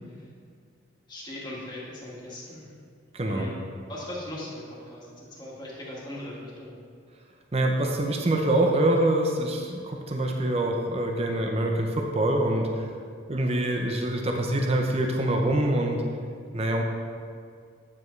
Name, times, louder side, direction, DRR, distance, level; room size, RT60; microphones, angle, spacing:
voice 1, 1.1-2.7 3.3-3.5 3.9-6.7, left 1 dB, 20° left, -5 dB, 1.8 m, -39 dB
voice 2, 3.1-3.5 7.5-12.9 13.3-16.0 16.5-16.8, right 1 dB, 30° right, 1 dB, 0.7 m, -25 dB
9.4 x 7.6 x 3.2 m, 2.2 s
head